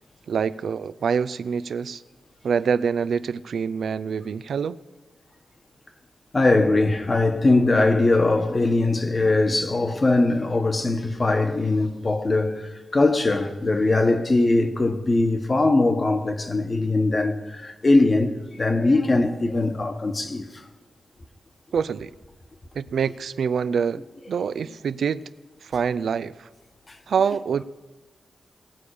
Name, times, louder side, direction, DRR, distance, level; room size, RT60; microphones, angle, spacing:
voice 1, 0.3-2.0 2.4-4.8 21.7-22.1 22.7-24.0 24.3-25.2 25.6-26.5 27.1-27.6, right 6 dB, 80° right, 0.4 m, -25 dB
voice 2, 6.3-20.4, left 2 dB, 40° left, 1.3 m, -21 dB
19.0 x 7.0 x 4.9 m
cardioid pair, 65°, 0 cm